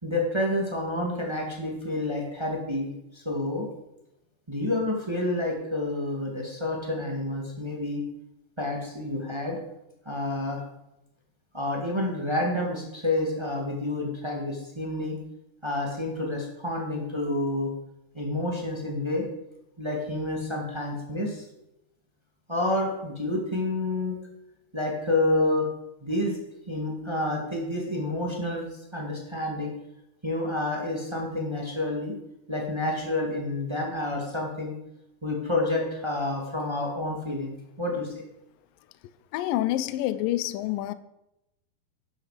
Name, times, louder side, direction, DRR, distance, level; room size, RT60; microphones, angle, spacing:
voice 1, 0.0-3.7 4.5-8.0 8.6-9.6 10.0-10.6 11.5-15.2 15.6-17.7 18.1-19.2 19.8-21.4 22.5-24.2 24.7-25.7 26.0-26.4 26.7-28.6 28.9-29.7 30.2-32.1 32.5-34.7 35.2-37.5 37.8-38.1, left 1 dB, 25° right, 0.6 m, -29 dB
voice 2, 39.3-40.9, left 14 dB, 85° left, 2.0 m, -27 dB
11.5 x 11.5 x 5.1 m
omnidirectional pair, 4.8 m